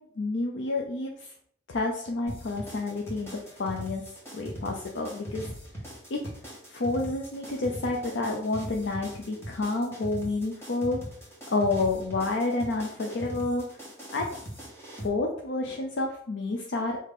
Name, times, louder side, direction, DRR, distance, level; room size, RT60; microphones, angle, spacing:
voice 1, 0.2-1.3 1.7-4.0 4.3-5.5 6.1-6.2 6.7-11.0 11.5-13.7 14.1-14.3 15.0-17.0, left 2 dB, 75° left, 1 dB, 0.6 m, -29 dB
sound 1, 2.3-15.1, equal, 15° left, 1.4 m, -41 dB
4.8 x 2.8 x 3.6 m, 0.63 s
head